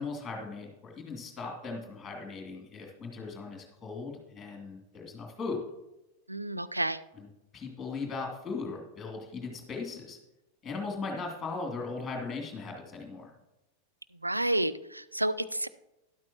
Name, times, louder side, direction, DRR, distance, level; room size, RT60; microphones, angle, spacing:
voice 1, 0.0-5.6 7.2-7.3 7.5-10.2 10.6-13.3, left 4 dB, 15° left, 0 dB, 2.7 m, -38 dB
voice 2, 6.3-7.0 14.2-15.7, right 1 dB, 85° right, 12 dB, 0.4 m, -30 dB
12.5 x 11.5 x 2.9 m, 0.94 s
figure-of-eight pair, 90°, 0 cm